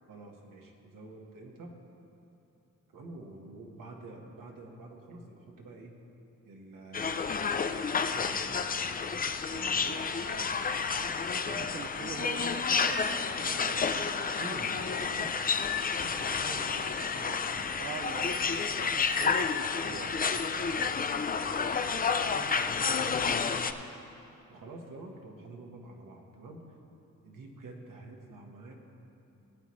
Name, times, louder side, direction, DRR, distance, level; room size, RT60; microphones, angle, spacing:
voice 1, 0.1-1.7 2.9-6.0 6.4-7.3 7.9-8.9 9.5-11.7 13.4-17.8 19.8-20.0 21.3-21.6 21.8-21.9 22.2-23.7 24.5-26.6 27.2-28.7, right 2 dB, 85° right, 0 dB, 1.4 m, -48 dB
sound 1, 6.9-23.7, left 5 dB, 30° left, 0.4 m, -30 dB
voice 2, 9.5-10.1 11.5-14.1 17.8-21.0, right 7 dB, 40° right, 8 dB, 0.4 m, -44 dB
18.0 x 8.5 x 3.2 m, 2.9 s
cardioid pair, 95°, 31 cm